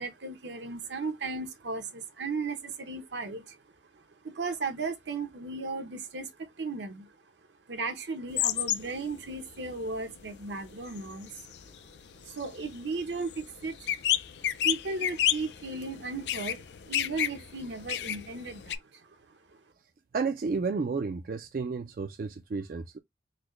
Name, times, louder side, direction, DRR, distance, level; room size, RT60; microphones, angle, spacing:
voice 1, 0.0-3.6 3.9-7.1 7.7-11.3 12.2-13.9 14.6-19.1 19.5-19.6, right 3 dB, 80° right, 0.9 m, -36 dB
sound 1, 8.3-9.0 9.3-18.8, left 11 dB, 75° left, 0.4 m, -31 dB
voice 2, 20.1-23.0, right 4 dB, 50° right, 0.3 m, -32 dB
4.1 x 2.1 x 3.1 m
head